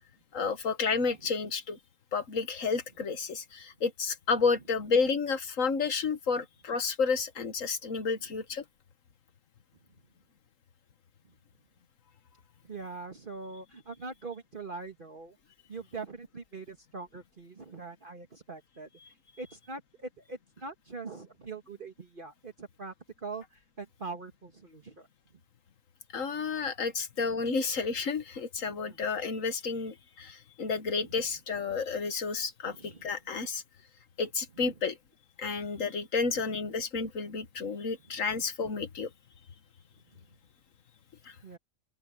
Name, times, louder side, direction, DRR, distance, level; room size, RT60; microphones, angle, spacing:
voice 1, 0.3-1.8 2.1-8.6 26.1-33.6 34.2-35.0 35.4-39.1 41.3-41.4, left 5 dB, 75° left, 1.8 m, -31 dB
voice 2, 12.6-15.4 15.7-25.1 28.6-29.0 32.7-33.1 36.3-36.6 41.4-41.6, right 4 dB, 40° right, 2.0 m, -43 dB
open air
omnidirectional pair, 1.4 m